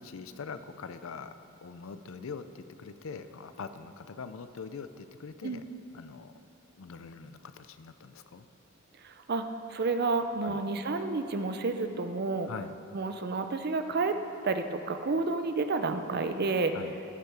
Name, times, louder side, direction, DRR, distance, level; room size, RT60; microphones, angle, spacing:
voice 1, 0.0-1.3 1.6-5.7 5.9-6.3 6.8-8.5 10.4-10.6 12.5-12.7 16.7-16.9, left 5 dB, 65° left, 11 dB, 0.5 m, -43 dB
voice 2, 9.0-12.5 12.9-14.2 14.4-16.7, right 3 dB, 50° right, 8 dB, 0.6 m, -30 dB
16.5 x 6.7 x 4.7 m, 3.0 s
head